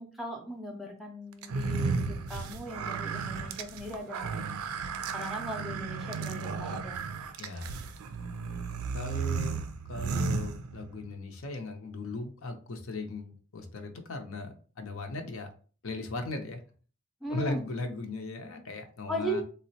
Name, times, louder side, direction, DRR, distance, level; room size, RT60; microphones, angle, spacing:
voice 1, 0.0-4.4 5.1-7.0 17.2-17.6 19.1-19.4, right 1 dB, ahead, 1 dB, 0.4 m, -38 dB
sound 1, 1.4-11.1, right 5 dB, 85° right, 0.4 m, -34 dB
voice 2, 7.4-7.7 8.9-9.6 9.9-15.5 15.8-16.6 17.3-19.4, left 2 dB, 65° left, 4 dB, 0.6 m, -37 dB
3.8 x 2.0 x 2.7 m, 0.39 s
head